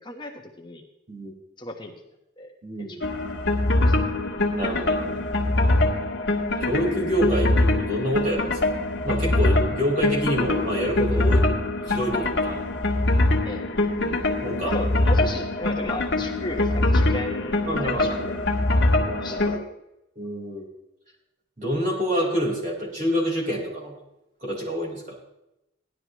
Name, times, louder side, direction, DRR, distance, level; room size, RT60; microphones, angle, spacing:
voice 1, 0.0-0.8 1.6-1.9 2.4-2.5 2.8-3.0 3.9-4.0 13.4-13.6 14.6-18.4 18.8-19.5, left 1 dB, 25° left, 2 dB, 1.2 m, -35 dB
voice 2, 2.6-3.0 4.5-5.2 6.6-8.7 9.0-11.5 11.9-12.6 14.0-14.1 14.4-14.8 17.7-18.3 18.9-19.6 20.1-20.7 21.6-24.0 24.4-25.2, equal, 45° right, -3 dB, 4.6 m, -27 dB
sound 1, 3.0-19.6, left 2 dB, 65° left, 1.7 m, -23 dB
17.5 x 12.0 x 3.1 m, 0.88 s
head